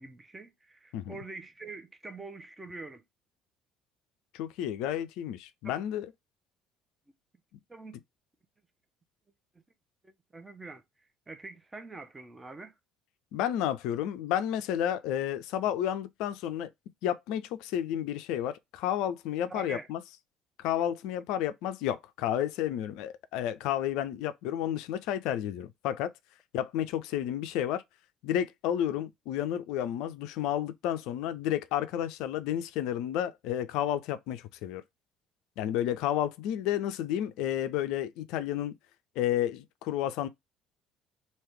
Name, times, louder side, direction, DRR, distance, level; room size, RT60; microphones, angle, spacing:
voice 1, 0.0-3.0 5.6-5.7 7.7-8.0 10.0-10.8 11.3-12.7 19.5-19.9, right 3 dB, 20° right, 0.7 m, -44 dB
voice 2, 4.3-6.1 13.3-16.7 17.0-20.0 20.6-26.1 26.5-27.8 28.2-34.8 35.6-38.7 39.2-40.3, left 11 dB, 60° left, 0.4 m, -31 dB
3.0 x 2.8 x 3.2 m
figure-of-eight pair, 55°, 0 cm